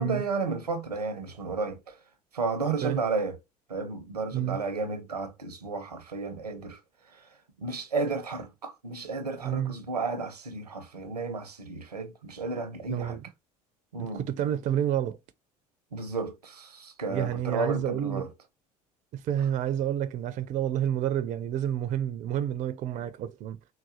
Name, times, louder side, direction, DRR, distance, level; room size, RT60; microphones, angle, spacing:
voice 1, 0.0-2.0 2.3-3.4 3.7-6.8 7.1-7.2 7.6-13.2 13.9-14.2 15.9-18.3, right 4 dB, 85° right, 0.6 m, -32 dB
voice 2, 9.4-9.7 12.9-13.3 14.0-15.2 17.1-18.3 19.1-23.6, right 10 dB, 40° right, 0.4 m, -29 dB
4.0 x 2.2 x 2.7 m
figure-of-eight pair, 65°, 20 cm